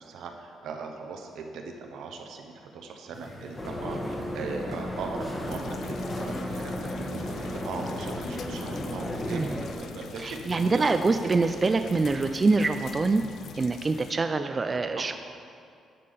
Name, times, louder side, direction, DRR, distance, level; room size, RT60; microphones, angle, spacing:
voice 1, 0.0-11.0 14.7-15.1, right 4 dB, 80° right, 3 dB, 0.9 m, -39 dB
sound 1, 3.1-13.1, left 2 dB, 45° left, 1.4 m, -49 dB
sound 2, 3.6-9.7, left 1 dB, 25° left, 1.2 m, -34 dB
sound 3, 5.4-14.1, left 7 dB, 65° left, 0.4 m, -44 dB
voice 2, 10.2-13.2 13.6-15.1, right 3 dB, 30° right, 8 dB, 0.3 m, -25 dB
10.5 x 3.7 x 6.8 m, 2.4 s
cardioid pair, 90°, 0 cm